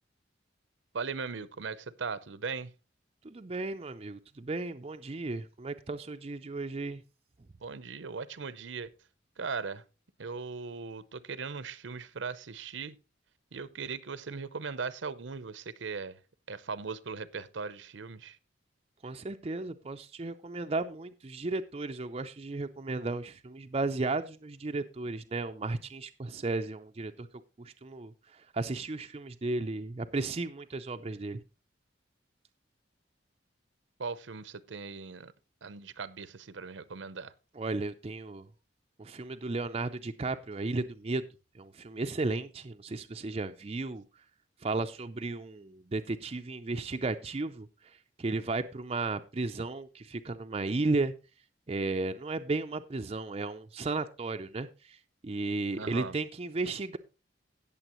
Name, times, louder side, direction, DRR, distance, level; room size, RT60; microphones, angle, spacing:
voice 1, 0.9-2.7 7.6-8.9 9.4-9.8 10.2-12.9 13.5-16.2 16.5-18.4 34.0-35.3 35.6-37.3 55.7-56.1, right 5 dB, 75° right, 0.7 m, -39 dB
voice 2, 3.2-7.0 19.0-27.3 27.6-28.1 28.5-31.4 37.6-38.5 39.0-41.2 41.6-44.0 44.6-47.7 48.2-51.1 51.7-55.0 55.2-57.0, right 3 dB, 30° right, 0.5 m, -34 dB
17.0 x 6.9 x 3.0 m
head